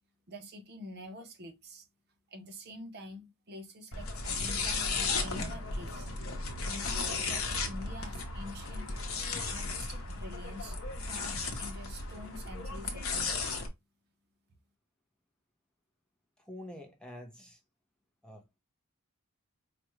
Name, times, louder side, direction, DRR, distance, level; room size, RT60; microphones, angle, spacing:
voice 1, 0.3-1.9 2.3-6.1 6.6-8.9 9.5-10.8 11.0-13.2, left 1 dB, 45° right, 0.7 m, -47 dB
sound 1, 3.9-13.7, left 3 dB, 65° left, 0.8 m, -35 dB
voice 2, 16.4-17.6 18.2-18.5, left 1 dB, 5° left, 0.7 m, -47 dB
4.8 x 2.2 x 3.0 m
head